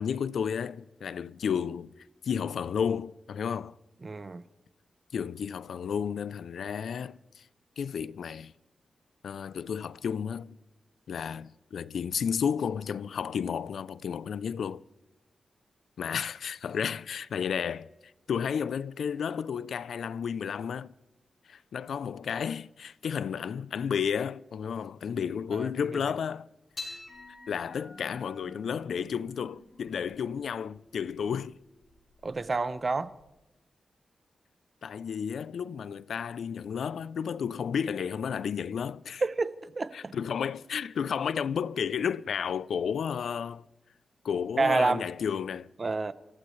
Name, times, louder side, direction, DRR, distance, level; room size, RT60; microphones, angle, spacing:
voice 1, 0.0-1.9 2.2-3.8 5.1-7.5 7.8-8.5 9.2-10.6 11.1-14.8 16.0-17.9 18.3-20.9 21.5-26.5 26.8-27.0 27.5-31.6 34.8-39.2 39.9-43.7 44.2-45.7, left 7 dB, 90° left, 0.4 m, -32 dB
voice 2, 4.0-4.4 25.6-25.7 32.2-33.1 39.2-40.1 44.6-45.1 45.8-46.1, right 3 dB, 35° right, 0.7 m, -28 dB
sound 1, 26.7-33.3, left 2 dB, 35° left, 7.0 m, -48 dB
30.0 x 15.0 x 3.2 m
wide cardioid pair, 125°, 0 cm